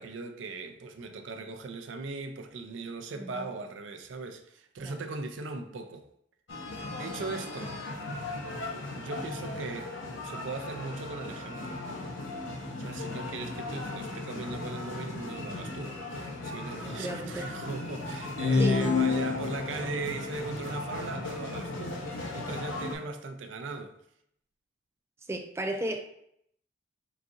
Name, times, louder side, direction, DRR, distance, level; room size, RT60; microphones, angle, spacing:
voice 1, 0.0-6.1 6.9-7.8 8.7-9.9 10.2-11.8 12.8-24.0, right 3 dB, 80° right, 0.4 m, -39 dB
voice 2, 3.2-3.5 4.8-5.0 16.7-17.5 18.6-18.8 19.0-19.2 25.3-26.0, right 1 dB, 15° right, 0.3 m, -35 dB
sound 1, 6.5-23.0, left 2 dB, 85° left, 0.7 m, -38 dB
sound 2, 18.4-20.0, left 4 dB, 60° left, 0.3 m, -26 dB
3.9 x 3.7 x 2.5 m
head